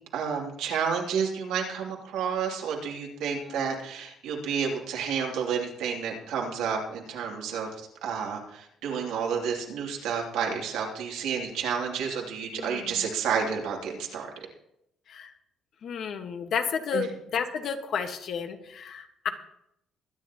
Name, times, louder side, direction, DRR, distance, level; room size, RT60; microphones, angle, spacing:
voice 1, 0.1-14.3 16.9-17.0, right 6 dB, 90° right, 0 dB, 2.9 m, -30 dB
voice 2, 3.3-3.8 12.5-13.1 15.1-15.3 15.8-19.3, left 6 dB, 60° left, 6 dB, 1.5 m, -32 dB
22.5 x 10.5 x 3.0 m, 0.77 s
cardioid pair, 125°, 0 cm